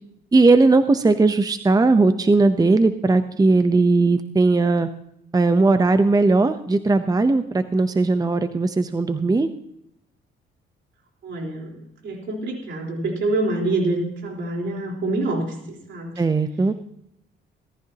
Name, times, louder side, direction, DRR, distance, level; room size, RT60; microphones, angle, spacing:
voice 1, 0.3-4.9 5.3-9.5 16.2-16.7, right 3 dB, 20° right, 10 dB, 0.8 m, -18 dB
voice 2, 11.2-16.2, right 2 dB, 65° right, 0 dB, 4.1 m, -26 dB
17.5 x 14.5 x 2.9 m, 0.75 s
cardioid pair, 90°, 20 cm